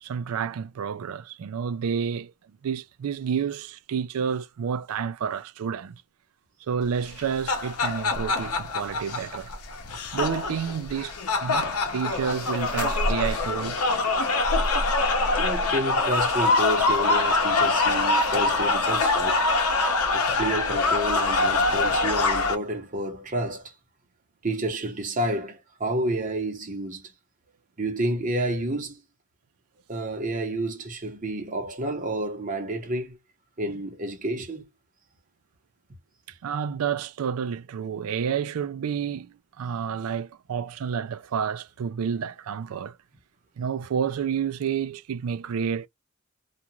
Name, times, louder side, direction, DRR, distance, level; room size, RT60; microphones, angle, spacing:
voice 1, 0.0-2.3 2.6-6.0 6.7-9.5 10.1-11.2 11.4-13.8 36.4-43.0 43.6-45.9, right 7 dB, 80° right, 0.4 m, -30 dB
sound 1, 7.1-22.5, left 3 dB, 85° left, 0.7 m, -24 dB
voice 2, 15.3-19.4 20.1-23.7 24.4-27.1 27.8-29.0 29.9-33.2 33.6-34.6, right 1 dB, 35° right, 1.0 m, -30 dB
2.5 x 2.3 x 2.9 m
head